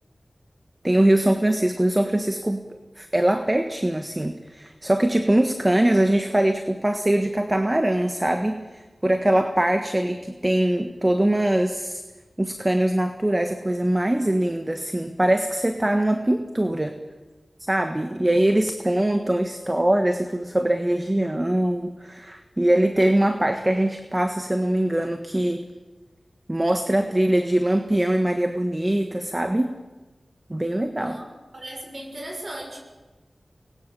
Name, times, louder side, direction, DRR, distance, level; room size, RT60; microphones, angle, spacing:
voice 1, 0.8-2.6 3.0-12.0 12.4-17.0 17.7-25.7 26.5-29.8 30.5-31.2, right 1 dB, 20° right, 7 dB, 1.5 m, -22 dB
voice 2, 31.0-31.3 31.5-32.8, right 1 dB, 50° right, 1 dB, 6.5 m, -37 dB
25.5 x 20.5 x 7.1 m, 1.2 s
wide cardioid pair, 55°, 0 cm